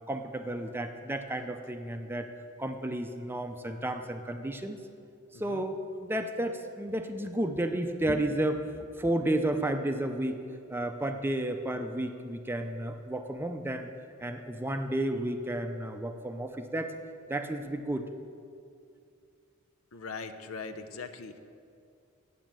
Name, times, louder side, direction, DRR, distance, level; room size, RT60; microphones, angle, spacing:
voice 1, 0.1-2.3 2.6-4.8 5.3-8.6 9.0-10.4 10.7-13.9 14.2-17.0 17.3-18.1, right 1 dB, 10° right, 6 dB, 0.5 m, -32 dB
voice 2, 5.3-5.7 19.9-21.4, left 4 dB, 80° left, 8 dB, 0.7 m, -41 dB
8.9 x 8.2 x 7.4 m, 2.4 s
head